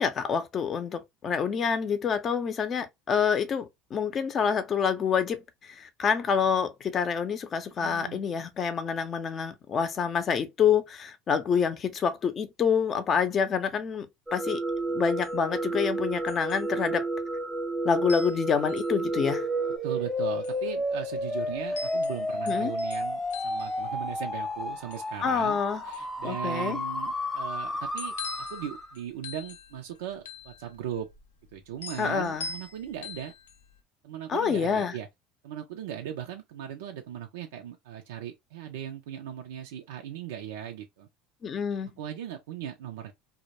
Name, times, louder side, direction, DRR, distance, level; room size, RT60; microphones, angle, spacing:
voice 1, 0.0-14.6 14.9-17.1 17.8-19.5 22.5-22.7 25.2-25.8 26.2-26.8 32.0-32.5 34.3-35.0 41.4-41.9, left 6 dB, 40° left, 0.6 m, -27 dB
voice 2, 7.8-8.2 19.8-25.6 25.8-31.1 31.5-33.3 34.0-35.1 35.4-41.1 42.0-43.1, right 10 dB, 80° right, 0.4 m, -38 dB
sound 1, 14.3-19.8, right 2 dB, 15° right, 0.4 m, -31 dB
sound 2, 14.7-33.8, left 4 dB, 85° left, 0.4 m, -45 dB
sound 3, 19.1-29.0, left 1 dB, 15° left, 0.8 m, -32 dB
2.2 x 2.0 x 2.8 m
hypercardioid pair, 85°, 0 cm